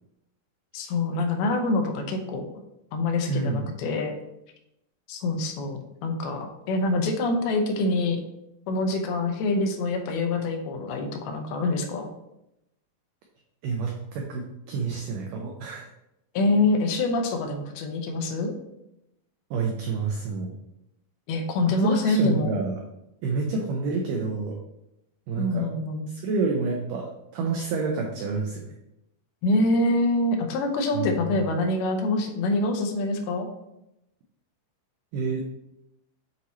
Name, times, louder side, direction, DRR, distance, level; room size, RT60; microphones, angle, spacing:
voice 1, 0.7-2.4 2.9-4.1 5.1-8.2 8.7-12.1 16.3-18.5 21.3-22.5 25.4-26.1 29.4-33.5, left 2 dB, 80° left, 3 dB, 2.7 m, -25 dB
voice 2, 3.3-3.8 13.6-15.9 19.5-20.5 21.8-22.8 23.2-24.6 25.3-25.7 26.1-28.6 30.9-31.2 35.1-35.4, right 4 dB, 90° right, 1 dB, 1.8 m, -28 dB
8.4 x 3.0 x 4.1 m, 0.87 s
omnidirectional pair, 4.6 m